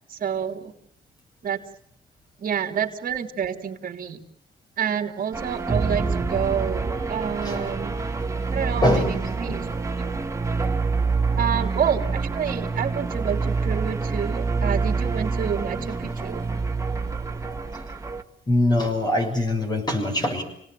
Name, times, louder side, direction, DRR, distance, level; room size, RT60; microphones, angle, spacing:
voice 1, 0.1-0.7 1.4-1.6 2.4-4.2 4.8-7.9 8.5-9.7 9.9-10.1 11.4-16.4, right 8 dB, 55° right, 4 dB, 3.3 m, -28 dB
sound 1, 5.3-18.2, right 4 dB, 15° right, 1.8 m, -26 dB
voice 2, 8.8-9.2 9.5-9.7 15.8-16.1 18.5-20.4, left 1 dB, 25° left, 5 dB, 6.9 m, -23 dB
29.5 x 19.0 x 9.3 m, 0.71 s
cardioid pair, 130°, 17 cm